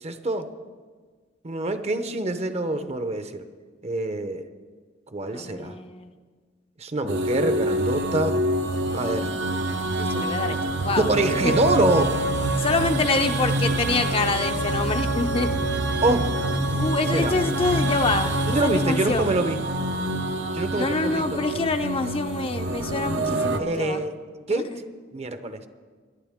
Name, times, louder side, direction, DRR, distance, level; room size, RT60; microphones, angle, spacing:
voice 1, 0.0-0.5 1.4-3.4 3.8-4.4 5.1-5.8 6.8-8.4 8.9-9.3 11.1-12.1 16.0-16.3 17.1-17.3 18.5-19.6 20.5-21.4 23.6-24.1 24.5-24.7 25.1-25.7, right 2 dB, 35° right, 9 dB, 0.7 m, -25 dB
voice 2, 5.3-6.1 10.0-10.6 10.8-11.1 11.4-11.5 12.6-15.5 16.8-19.3 20.7-24.0 24.5-24.8, left 3 dB, 30° left, 7 dB, 0.6 m, -26 dB
sound 1, 7.1-23.6, right 1 dB, 70° right, 0.8 m, -26 dB
22.0 x 11.0 x 3.6 m, 1.5 s
head